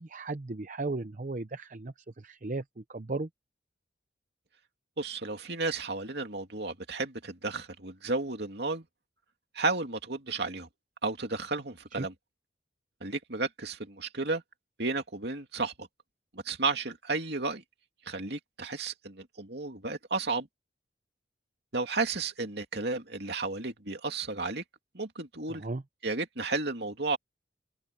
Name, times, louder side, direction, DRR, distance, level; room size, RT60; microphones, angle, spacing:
voice 1, 0.0-3.3 12.0-12.1 25.5-25.8, right 3 dB, 40° right, 0.7 m, -36 dB
voice 2, 5.0-8.8 9.5-10.7 11.0-12.1 13.0-14.4 14.8-15.9 16.3-17.6 18.1-20.5 21.7-24.6 24.9-25.6 26.0-27.2, right 3 dB, 60° right, 2.8 m, -33 dB
open air
head